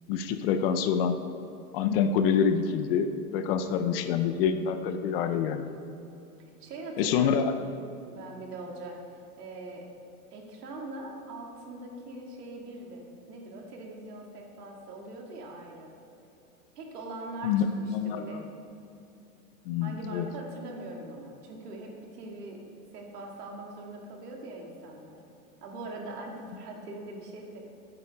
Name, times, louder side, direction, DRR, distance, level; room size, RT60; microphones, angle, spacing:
voice 1, 0.1-1.1 1.7-5.8 7.0-7.5 17.4-18.2 19.7-20.3, left 7 dB, 40° left, 9 dB, 0.6 m, -26 dB
voice 2, 3.5-3.9 6.6-9.0 9.4-9.9 10.3-15.9 16.8-18.5 19.8-22.6 22.9-25.2 25.6-27.6, right 2 dB, 75° right, 0 dB, 2.3 m, -42 dB
9.1 x 8.8 x 5.2 m, 2.9 s
hypercardioid pair, 125°, 47 cm